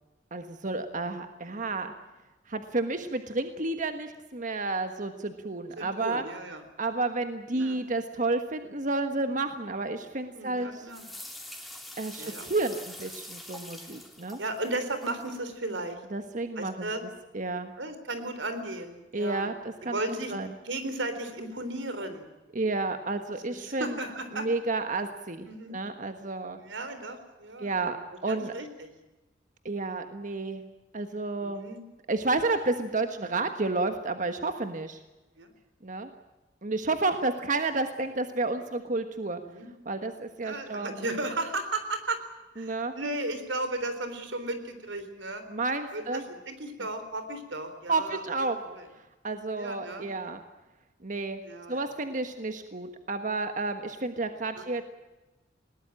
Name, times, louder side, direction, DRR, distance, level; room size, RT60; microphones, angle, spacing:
voice 1, 0.3-1.9 2.5-6.2 6.8-10.9 12.0-14.4 16.1-16.9 17.3-17.7 19.1-20.5 22.5-23.9 24.3-26.6 27.6-28.0 28.2-28.5 29.6-30.6 30.9-31.6 32.1-35.0 35.8-36.1 36.6-39.4 39.8-41.0 42.6-42.9 45.5-46.2 47.9-48.6 49.2-50.4 51.0-51.4 51.7-54.8, right 3 dB, 45° right, 8 dB, 1.4 m, -31 dB
voice 2, 5.8-6.6 7.5-7.8 10.0-11.1 12.2-12.5 14.4-16.0 16.6-17.0 17.8-19.5 19.9-20.3 20.6-22.2 23.3-24.5 25.4-25.8 26.5-27.7 28.3-28.9 31.4-31.8 35.4-35.5 39.5-39.7 40.4-42.2 42.6-45.4 45.9-48.2 48.7-48.9 49.6-50.1 51.4-52.0 54.6-54.7, right 2 dB, 85° right, 10 dB, 3.8 m, -35 dB
sound 1, 10.9-15.4, left 1 dB, ahead, 3.3 m, -45 dB
21.0 x 19.0 x 8.8 m, 1.1 s
head